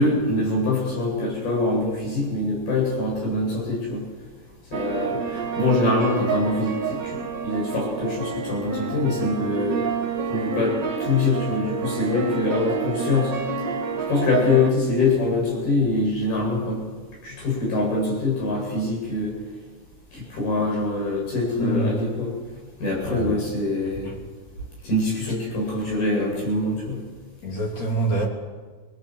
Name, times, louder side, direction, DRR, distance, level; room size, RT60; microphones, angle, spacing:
voice 1, 0.0-4.0 4.7-7.2 7.4-9.8 10.3-13.3 14.1-16.8 17.2-19.3 20.1-22.3 22.8-24.1 24.8-27.0, left 2 dB, 70° left, -1 dB, 10.0 m, -24 dB
sound 1, 4.7-14.7, right 6 dB, 50° right, 1.3 m, -29 dB
voice 2, 21.6-22.0 23.0-23.4 27.4-28.3, right 1 dB, 45° left, -1 dB, 4.5 m, -25 dB
25.0 x 19.0 x 8.0 m, 1.4 s
omnidirectional pair, 4.6 m